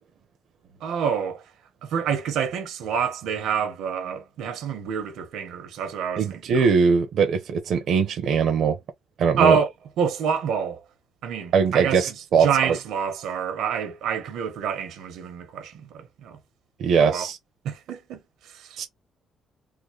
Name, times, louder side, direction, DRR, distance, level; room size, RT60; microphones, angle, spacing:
voice 1, 0.8-1.4 1.8-6.7 9.4-9.7 10.0-10.8 11.2-16.4 17.0-17.3 17.6-18.8, right 7 dB, 85° right, 1.1 m, -27 dB
voice 2, 6.2-8.8 9.2-9.6 11.5-12.8 16.8-17.4 18.8-18.9, right 6 dB, 55° right, 0.7 m, -21 dB
3.7 x 2.1 x 3.2 m
cardioid pair, 155°, 0 cm